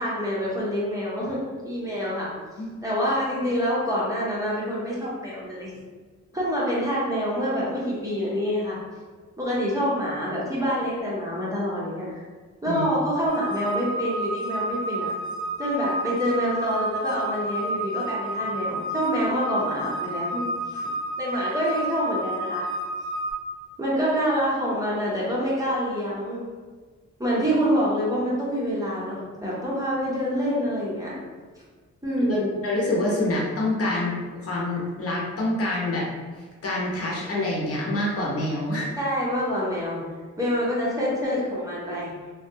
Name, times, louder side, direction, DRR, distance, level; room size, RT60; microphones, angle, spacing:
voice 1, 0.0-1.4 1.6-2.3 2.8-5.7 6.3-8.8 9.4-12.0 12.6-15.1 15.6-20.4 20.7-20.9 21.2-22.7 23.8-26.4 27.2-31.2 32.0-32.5 39.0-40.0 40.4-42.1, equal, 10° right, -8 dB, 0.5 m, -26 dB
sound 1, 13.3-23.3, right 1 dB, 80° left, 0.9 m, -30 dB
voice 2, 32.3-34.1 34.4-36.1 36.6-38.9, left 1 dB, 50° left, -5 dB, 0.8 m, -26 dB
3.5 x 2.2 x 2.7 m, 1.5 s
wide cardioid pair, 180°, 30 cm